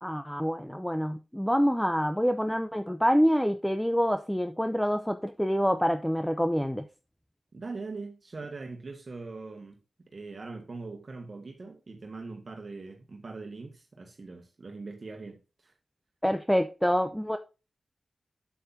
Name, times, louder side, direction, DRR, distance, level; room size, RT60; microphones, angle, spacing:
voice 1, 0.0-6.9 16.2-17.4, equal, 5° left, 0.7 m, -26 dB
voice 2, 7.5-9.8 10.1-15.7, right 3 dB, 50° right, 1.6 m, -41 dB
8.6 x 7.8 x 2.7 m
cardioid pair, 55°, 0 cm